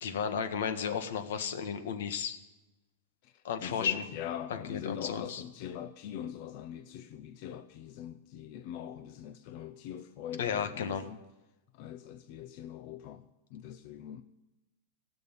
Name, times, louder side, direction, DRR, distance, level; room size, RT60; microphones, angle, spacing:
voice 1, 0.0-2.4 3.4-4.1 4.5-5.4 10.4-11.0, left 7 dB, 75° left, 1.7 m, -33 dB
voice 2, 3.2-11.2 11.7-13.2 13.5-14.2, left 10 dB, 45° left, 0.7 m, -42 dB
17.0 x 7.1 x 10.0 m
supercardioid pair, 160°, 0 cm